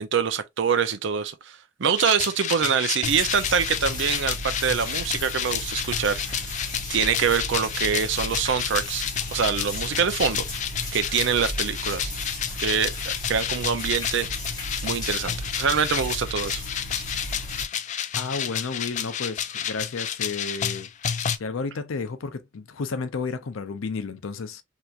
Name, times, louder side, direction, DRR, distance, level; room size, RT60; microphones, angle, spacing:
voice 1, 0.0-6.5 6.9-9.1 9.3-10.4 10.9-12.1 12.6-12.9 13.3-14.3 14.8-16.6, right 6 dB, 65° right, 0.5 m, -25 dB
sound 1, 2.0-21.4, left 9 dB, 35° left, 0.3 m, -31 dB
sound 2, 3.0-17.6, left 1 dB, 20° left, 1.2 m, -35 dB
voice 2, 18.2-20.9 21.4-24.6, left 4 dB, 90° left, 0.5 m, -32 dB
3.4 x 2.8 x 2.4 m
head